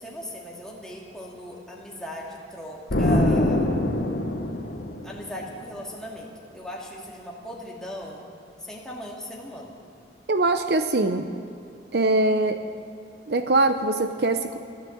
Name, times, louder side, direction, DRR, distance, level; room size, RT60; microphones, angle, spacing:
voice 1, 0.0-3.7 5.0-8.3 8.6-9.8, equal, 5° left, -3 dB, 2.2 m, -37 dB
Explosion, 2.9-5.6, left 1 dB, 65° left, 1.3 m, -24 dB
voice 2, 10.3-11.3 11.9-12.6 13.3-14.6, right 2 dB, 60° right, 8 dB, 0.7 m, -22 dB
15.0 x 12.0 x 7.9 m, 2.5 s
head